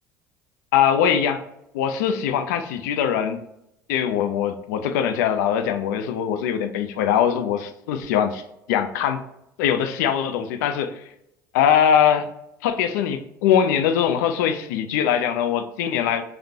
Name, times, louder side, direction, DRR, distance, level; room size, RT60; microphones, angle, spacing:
voice 1, 0.7-1.4 1.7-3.4 3.9-8.4 8.7-9.2 9.6-10.9 11.5-12.3 12.6-16.2, left 8 dB, 70° left, 9 dB, 0.4 m, -22 dB
4.8 x 2.0 x 2.7 m, 0.81 s
figure-of-eight pair, 65°, 10 cm